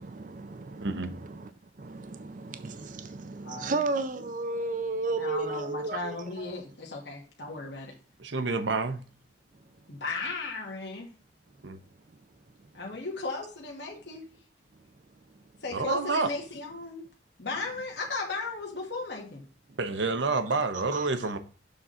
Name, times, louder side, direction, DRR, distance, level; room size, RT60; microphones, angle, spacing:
voice 1, 0.0-6.8 9.5-10.0 11.5-12.8 14.7-15.6 19.7-19.8 20.5-21.3, right 3 dB, 45° right, 0.5 m, -36 dB
voice 2, 3.4-3.7 5.2-7.9 9.9-11.1 12.7-14.3 15.6-17.1 17.4-19.4, left 3 dB, 65° left, 1.4 m, -36 dB
voice 3, 8.2-9.0 11.6-11.8 15.7-16.3 19.8-21.4, right 3 dB, 75° right, 0.8 m, -28 dB
7.0 x 3.8 x 5.5 m
head